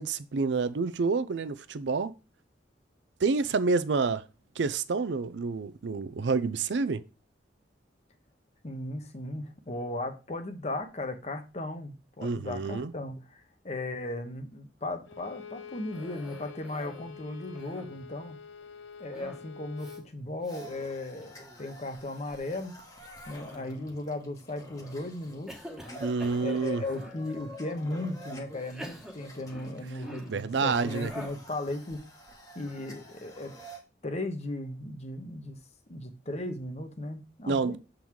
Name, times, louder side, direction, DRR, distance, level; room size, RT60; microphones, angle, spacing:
voice 1, 0.0-2.1 3.2-4.2 4.6-7.0 12.2-12.9 26.0-26.8 30.3-31.1 37.5-37.8, right 4 dB, 70° right, 0.5 m, -28 dB
voice 2, 8.6-18.4 19.0-22.8 23.3-25.5 26.4-32.0 32.5-33.5 34.0-35.6 35.9-37.8, left 2 dB, 35° left, 1.0 m, -36 dB
Bowed string instrument, 15.1-20.1, left 7 dB, 90° left, 0.7 m, -47 dB
Cough, 15.9-17.1 17.4-18.1 19.1-19.5 19.8-20.0 20.4-20.7 21.2-21.7 23.2-24.0 24.6-25.0 25.5-27.2 27.9-28.0 28.6-30.5 31.1-31.5, equal, 5° right, 1.1 m, -46 dB
sound 1, 20.5-33.8, equal, 20° left, 1.1 m, -48 dB
7.1 x 3.9 x 4.6 m
head